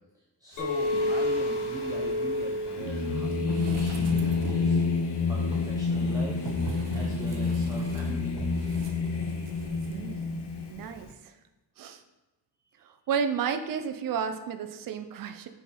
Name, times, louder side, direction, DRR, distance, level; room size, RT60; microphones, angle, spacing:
voice 1, 0.4-4.8 5.2-6.5 6.9-8.7, right 1 dB, 10° right, -2 dB, 0.7 m, -41 dB
Singing, 0.6-11.0, left 4 dB, 75° left, 0.9 m, -29 dB
Chink clink, 0.6-5.8, left 1 dB, 45° left, 1.3 m, -32 dB
sound 1, 3.5-4.8 5.4-9.9 10.2-10.3, right 5 dB, 85° right, 0.7 m, -42 dB
voice 2, 9.9-10.4 10.7-11.3 11.8-12.0 12.8-15.5, right 7 dB, 55° right, 8 dB, 0.5 m, -32 dB
6.0 x 4.1 x 4.2 m, 1.1 s
wide cardioid pair, 160°, 41 cm